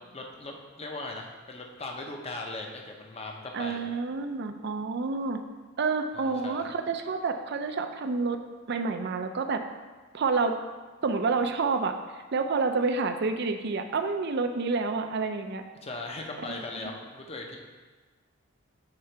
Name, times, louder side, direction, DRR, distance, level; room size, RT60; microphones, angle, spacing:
voice 1, 0.1-3.8 6.1-6.7 15.8-17.6, left 2 dB, 30° left, 1 dB, 0.7 m, -39 dB
voice 2, 3.5-5.4 5.8-8.4 8.7-9.6 10.1-10.6 11.0-12.0 12.3-15.6 16.5-16.9, right 4 dB, 55° right, 7 dB, 0.5 m, -28 dB
6.7 x 3.8 x 4.4 m, 1.3 s
head